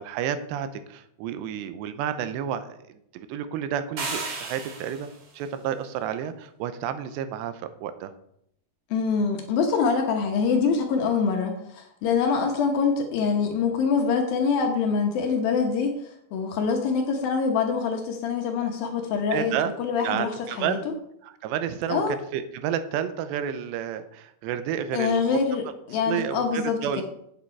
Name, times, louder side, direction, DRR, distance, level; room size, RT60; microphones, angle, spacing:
voice 1, 0.0-2.8 3.1-8.1 19.3-19.7 20.0-20.9 21.2-25.2 26.1-27.0, right 9 dB, 90° right, 10 dB, 2.9 m, -30 dB
sound 1, 4.0-5.2, right 3 dB, 40° right, 2.7 m, -33 dB
voice 2, 8.9-20.8 21.9-22.2 24.9-27.0, left 5 dB, 70° left, 3 dB, 2.4 m, -25 dB
8.8 x 8.5 x 4.5 m, 0.74 s
omnidirectional pair, 5.0 m